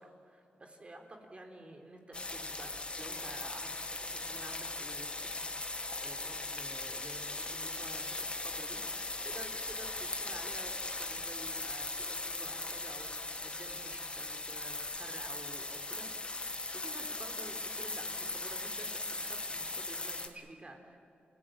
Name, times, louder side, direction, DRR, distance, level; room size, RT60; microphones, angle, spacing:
voice 1, 0.0-8.8 9.2-16.1 16.5-21.0, right 1 dB, 30° right, 3 dB, 3.8 m, -51 dB
sound 1, 2.1-20.3, left 2 dB, 30° left, 2.0 m, -39 dB
28.5 x 16.5 x 8.8 m, 2.7 s
cardioid pair, 80°, 4 cm